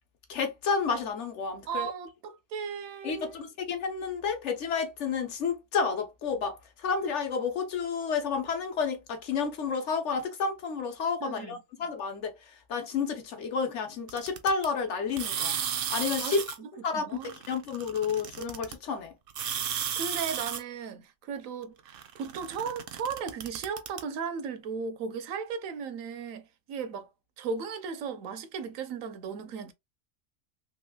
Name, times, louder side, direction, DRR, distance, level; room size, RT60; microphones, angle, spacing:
voice 1, 0.3-1.9 3.0-15.5 15.9-16.4 16.8-19.1, left 5 dB, 65° left, 1.1 m, -31 dB
voice 2, 1.7-3.3 11.2-11.6 16.2-17.3 19.7-27.1 27.4-29.7, right 6 dB, 90° right, 1.1 m, -36 dB
sound 1, 14.1-14.7 15.1-16.6 17.2-18.7 19.3-20.6 21.9-24.0, right 8 dB, 60° right, 0.6 m, -34 dB
3.3 x 2.9 x 2.2 m
omnidirectional pair, 1.3 m